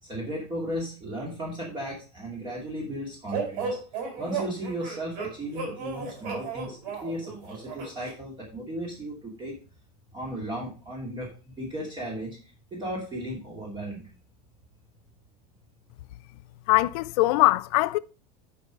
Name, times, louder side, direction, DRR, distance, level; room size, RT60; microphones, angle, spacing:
voice 1, 0.0-3.8 4.2-9.5 10.1-14.1, right 1 dB, 20° right, 2.6 m, -35 dB
sound 1, 3.3-8.1, right 5 dB, 70° right, 4.0 m, -34 dB
voice 2, 16.7-18.0, left 20 dB, 65° left, 0.5 m, -21 dB
9.9 x 4.8 x 5.2 m
supercardioid pair, 145°, 21 cm